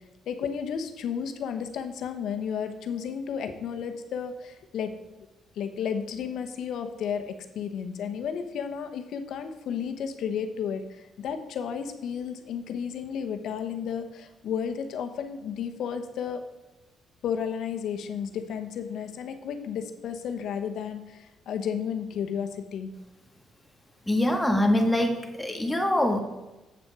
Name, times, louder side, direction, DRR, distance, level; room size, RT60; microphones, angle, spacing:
voice 1, 0.3-4.9 5.6-16.4 17.2-22.9, left 7 dB, 75° left, 7 dB, 1.1 m, -33 dB
voice 2, 24.1-26.2, left 1 dB, 10° left, 3 dB, 1.7 m, -24 dB
8.2 x 7.0 x 4.9 m, 1.1 s
cardioid pair, 90°, 0 cm